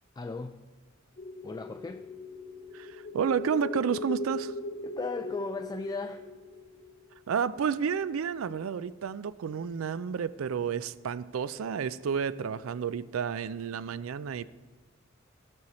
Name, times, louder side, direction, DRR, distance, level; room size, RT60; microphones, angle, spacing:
voice 1, 0.2-0.6 1.4-2.1 4.8-6.3, left 3 dB, 20° left, 7 dB, 0.3 m, -36 dB
sound 1, 1.2-7.7, left 1 dB, 40° left, 0.8 m, -40 dB
voice 2, 2.7-4.5 7.3-14.4, right 7 dB, 85° right, 17 dB, 0.4 m, -31 dB
16.5 x 6.4 x 4.2 m, 1.3 s
head